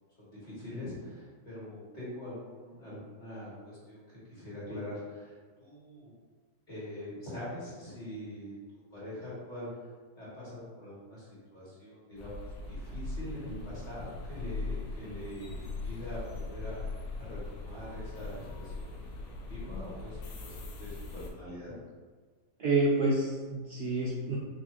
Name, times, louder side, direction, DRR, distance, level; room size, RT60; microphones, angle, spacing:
voice 1, 0.4-5.3 5.6-6.1 6.7-9.7 10.2-12.3 12.7-16.8 17.2-21.7, left 1 dB, 30° left, -10 dB, 1.4 m, -43 dB
sound 1, 12.2-21.3, left 3 dB, 80° left, 1.2 m, -40 dB
voice 2, 22.6-24.4, right 2 dB, 85° right, -6 dB, 0.5 m, -28 dB
4.2 x 2.7 x 2.9 m, 1.5 s
omnidirectional pair, 1.7 m